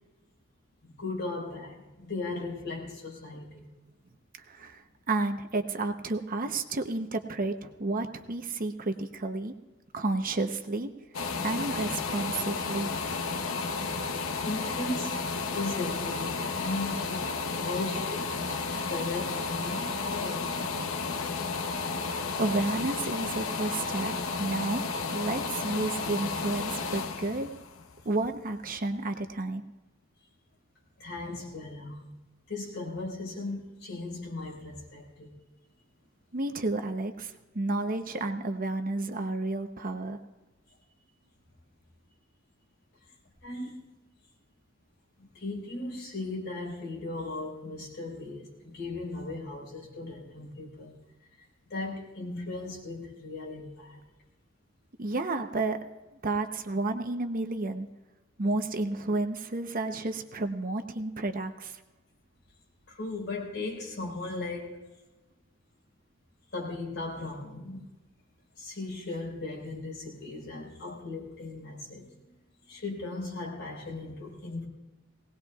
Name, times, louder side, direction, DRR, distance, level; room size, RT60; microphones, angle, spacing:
voice 1, 0.8-3.7 14.4-15.2 15.5-17.2 17.6-20.8 31.0-32.1 32.5-35.3 43.4-43.8 45.2-51.0 51.7-54.0 62.9-64.8 66.5-67.9 68.6-72.1 72.7-74.6, left 2 dB, 55° left, -3 dB, 4.8 m, -37 dB
voice 2, 4.5-9.5 9.9-10.9 11.4-12.9 22.4-24.1 24.4-24.8 25.1-27.5 28.0-29.6 36.3-40.2 55.0-55.8 56.2-57.9 58.4-61.8, right 2 dB, 45° right, 7 dB, 0.8 m, -31 dB
sound 1, 11.1-28.8 29.3-29.4, left 4 dB, 80° left, 0.9 m, -32 dB
20.5 x 18.5 x 2.4 m, 1.1 s
head